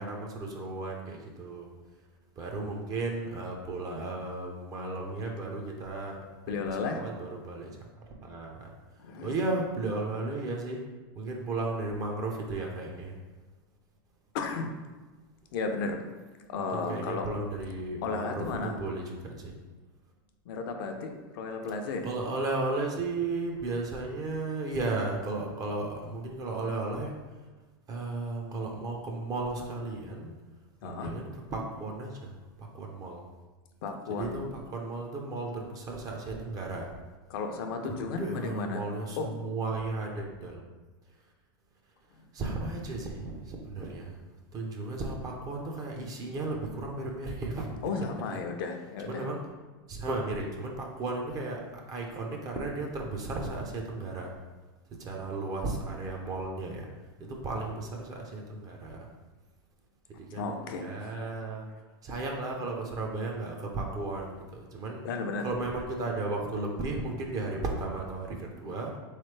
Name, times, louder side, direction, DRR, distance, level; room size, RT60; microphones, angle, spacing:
voice 1, 0.0-1.7 2.4-7.7 8.2-8.7 9.2-10.8 11.2-13.2 16.7-19.5 22.0-27.1 27.9-30.3 30.8-32.3 32.6-33.2 34.2-34.5 34.7-36.9 37.8-40.7 42.3-44.2 44.5-47.8 49.1-49.4 49.9-51.6 51.9-54.3 55.0-56.9 57.2-59.1 60.2-61.6 62.0-65.0 65.4-69.0, right 2 dB, 30° right, 0 dB, 0.6 m, -34 dB
voice 2, 6.5-7.0 9.0-9.4 14.3-14.7 15.5-16.1 16.5-17.3 18.0-18.8 20.5-22.1 30.8-31.1 33.8-34.4 37.3-38.8 39.2-39.3 42.1-42.2 47.8-49.3 60.3-61.1 65.0-65.5, left 4 dB, 65° left, 4 dB, 0.6 m, -34 dB
3.6 x 3.2 x 3.3 m, 1.2 s
supercardioid pair, 130°, 12 cm